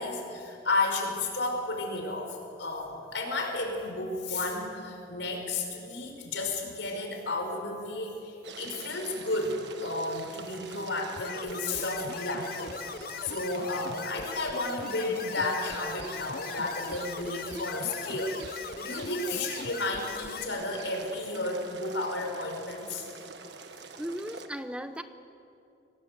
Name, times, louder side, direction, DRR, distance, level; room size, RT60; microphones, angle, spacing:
voice 1, 0.0-23.1, left 2 dB, 75° left, 2 dB, 4.9 m, -33 dB
sound 1, 8.4-24.5, right 4 dB, 65° right, 1.5 m, -46 dB
sound 2, 11.2-20.4, left 6 dB, 50° left, 0.7 m, -40 dB
voice 2, 13.0-13.4 24.0-25.0, equal, 5° right, 9 dB, 0.7 m, -38 dB
25.5 x 18.5 x 8.0 m, 2.6 s
head